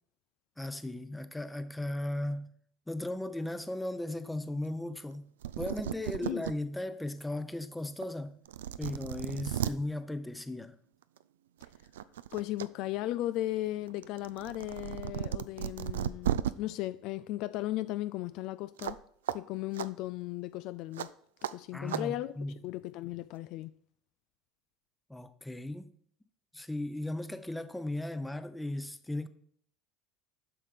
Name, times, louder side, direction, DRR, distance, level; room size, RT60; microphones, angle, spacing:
voice 1, 0.6-2.5 2.9-8.4 8.8-10.8 21.7-22.6 25.1-25.9 26.5-29.3, left 1 dB, 10° left, 0.8 m, -36 dB
sound 1, 5.1-5.2 5.4-6.5 7.1-7.2 8.0-8.1 8.4-9.7 11.0-11.2 11.6-12.7 13.0-16.5 18.8-19.0 19.3-19.4 19.7-19.9 21.0-21.1 21.4-21.5 21.9-22.0, right 11 dB, 80° right, 0.3 m, -35 dB
voice 2, 12.3-19.0 19.3-21.1 21.5-22.3 22.6-23.7, left 15 dB, 60° left, 0.3 m, -36 dB
7.7 x 5.7 x 5.1 m
hypercardioid pair, 75°, 0 cm